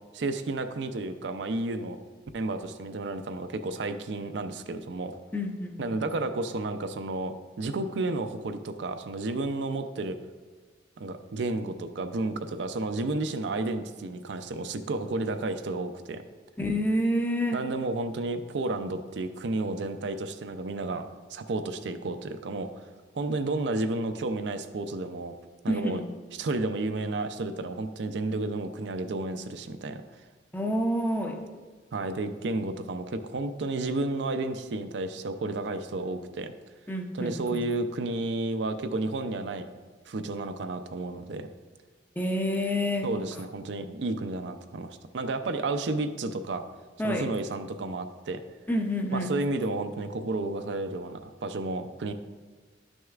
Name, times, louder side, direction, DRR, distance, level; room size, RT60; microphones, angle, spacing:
voice 1, 0.1-2.0 2.3-5.2 5.8-10.2 11.0-16.2 17.5-22.9 23.1-25.3 25.6-26.0 26.4-30.0 31.9-36.5 37.1-39.7 40.1-41.5 43.0-46.6 47.0-48.4 49.1-52.1, right 2 dB, 70° right, 8 dB, 0.5 m, -32 dB
voice 2, 5.3-6.2 16.6-17.7 25.7-26.0 30.5-31.6 36.9-37.6 42.2-43.1 47.0-47.3 48.7-49.3, equal, 10° left, 3 dB, 0.6 m, -28 dB
11.0 x 6.3 x 2.4 m, 1.4 s
head